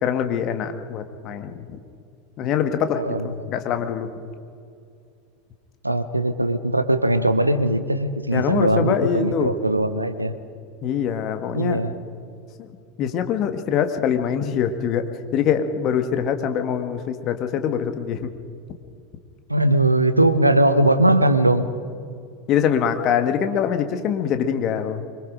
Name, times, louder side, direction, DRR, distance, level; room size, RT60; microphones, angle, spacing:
voice 1, 0.0-1.8 2.4-4.1 8.3-9.5 10.8-11.8 12.6-12.7 13.0-18.3 22.5-25.1, left 8 dB, 40° left, 7 dB, 1.7 m, -24 dB
voice 2, 5.8-10.3 11.5-11.9 19.5-21.7, right 1 dB, 90° right, 12 dB, 0.9 m, -20 dB
25.0 x 23.0 x 5.2 m, 2.4 s
figure-of-eight pair, 80°, 0 cm